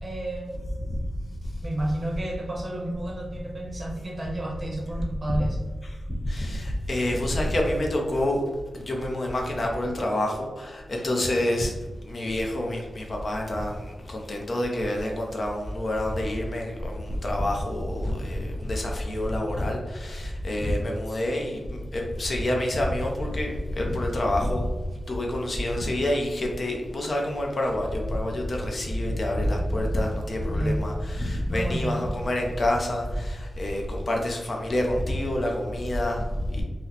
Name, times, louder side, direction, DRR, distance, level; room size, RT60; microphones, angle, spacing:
voice 1, 0.0-0.7 1.6-5.6 30.5-30.9 31.5-32.1, right 1 dB, 30° right, -2 dB, 0.7 m, -31 dB
voice 2, 6.2-8.4 8.7-11.7 12.0-24.7 25.1-36.6, left 1 dB, 40° left, 0 dB, 0.5 m, -27 dB
2.8 x 2.0 x 3.9 m, 1.3 s
wide cardioid pair, 145°, 0 cm